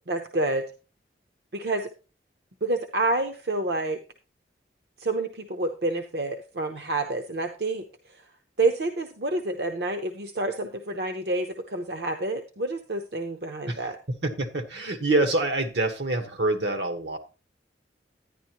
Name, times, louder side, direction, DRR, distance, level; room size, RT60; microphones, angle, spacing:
voice 1, 0.1-0.6 1.5-1.9 2.6-4.0 5.0-8.2 8.6-14.0, right 2 dB, 65° right, 6 dB, 0.8 m, -28 dB
voice 2, 14.1-17.2, right 2 dB, 80° right, 8 dB, 1.3 m, -26 dB
11.0 x 9.8 x 3.0 m, 0.33 s
head